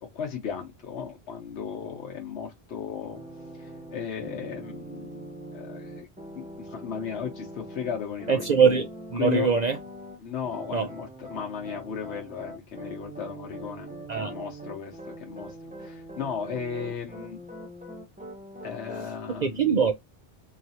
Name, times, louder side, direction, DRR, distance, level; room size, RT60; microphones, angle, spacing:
voice 1, 0.0-3.2 3.5-6.1 6.3-8.5 9.1-9.5 10.2-17.4 18.6-19.7, left 7 dB, 80° left, 1.1 m, -35 dB
sound 1, 3.1-10.2 10.4-19.1, right 1 dB, 10° right, 0.7 m, -42 dB
voice 2, 8.3-9.8 10.7-10.9 14.1-14.3 19.4-19.9, right 6 dB, 50° right, 0.6 m, -22 dB
4.0 x 3.0 x 2.7 m
omnidirectional pair, 1.1 m